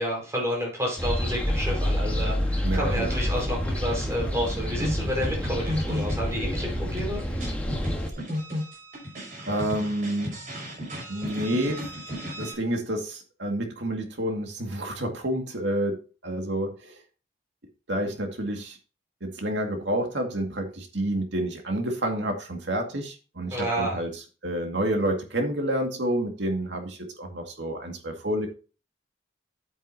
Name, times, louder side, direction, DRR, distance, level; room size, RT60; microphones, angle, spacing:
voice 1, 0.0-7.2 23.5-24.0, equal, 15° right, -2 dB, 4.7 m, -30 dB
sound 1, 1.0-8.1, equal, 5° left, 1.4 m, -28 dB
voice 2, 2.6-3.2 9.5-10.4 11.1-11.9 12.4-16.9 17.9-18.8 19.2-24.1 24.4-28.5, right 1 dB, 75° right, 3 dB, 2.1 m, -29 dB
sound 2, 4.8-12.5, equal, 45° right, 5.7 m, -34 dB
9.4 x 8.5 x 2.8 m, 0.34 s
head